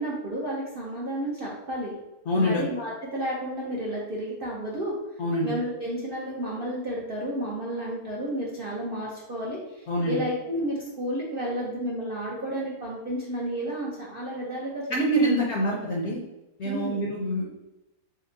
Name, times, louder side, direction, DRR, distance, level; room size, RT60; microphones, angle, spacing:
voice 1, 0.0-1.9 2.3-4.9 5.4-14.9 15.1-15.4 16.6-17.0, right 1 dB, 50° right, -5 dB, 0.7 m, -32 dB
voice 2, 2.3-2.6 5.2-5.5 9.9-10.2 14.9-16.2 16.6-17.5, equal, 55° left, -3 dB, 0.8 m, -25 dB
4.2 x 2.1 x 3.9 m, 0.97 s
omnidirectional pair, 1.7 m